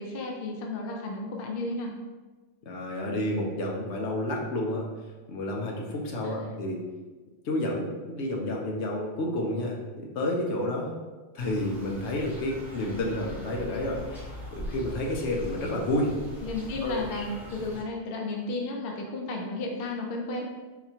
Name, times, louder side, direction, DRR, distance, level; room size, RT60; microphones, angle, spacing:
voice 1, 0.0-1.9 6.2-6.4 16.4-20.5, left 2 dB, 60° left, 0 dB, 0.8 m, -33 dB
voice 2, 2.7-4.9 5.3-6.8 7.4-10.9 11.3-16.1 16.8-17.0, left 1 dB, 80° left, -1 dB, 1.0 m, -30 dB
sound 1, 11.4-17.8, equal, ahead, 0.7 m, -41 dB
4.2 x 3.0 x 2.7 m, 1.3 s
omnidirectional pair, 1.2 m